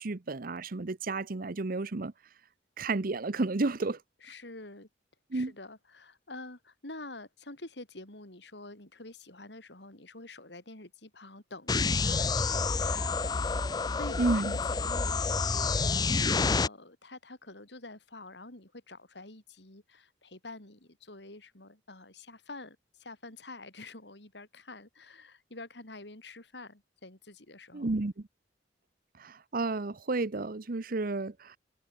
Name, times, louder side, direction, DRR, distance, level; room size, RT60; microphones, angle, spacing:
voice 1, 0.0-2.1 2.8-4.0 5.3-5.5 14.2-14.5 27.7-28.3 29.2-31.6, right 3 dB, 50° right, 0.8 m, -31 dB
voice 2, 4.2-4.9 5.3-16.2 16.5-27.9, left 2 dB, 70° left, 4.2 m, -47 dB
sound 1, 11.7-16.7, left 4 dB, 20° left, 0.4 m, -28 dB
head